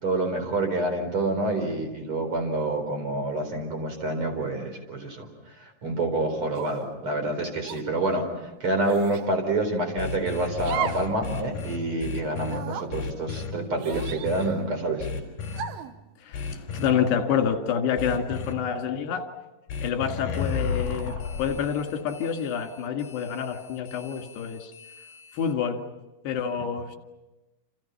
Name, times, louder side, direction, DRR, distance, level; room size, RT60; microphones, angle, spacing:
voice 1, 0.0-15.1, right 2 dB, 30° right, 4 dB, 4.7 m, -28 dB
sound 1, 6.5-6.9 7.6-7.8 8.8-9.3 10.6-11.1 11.5-11.6 12.4-12.9 13.8-14.7 15.5-15.9, right 9 dB, 75° right, 2.9 m, -34 dB
sound 2, 10.0-12.6 12.9-13.5 13.9-14.5 15.0-15.6 16.3-16.9 18.0-18.5 19.7-25.5, left 5 dB, 65° left, 5.5 m, -34 dB
voice 2, 16.2-19.3 19.8-24.7 25.3-25.9 26.2-27.0, left 7 dB, 80° left, 4 dB, 4.3 m, -28 dB
29.0 x 28.0 x 5.8 m, 1.0 s
omnidirectional pair, 4.7 m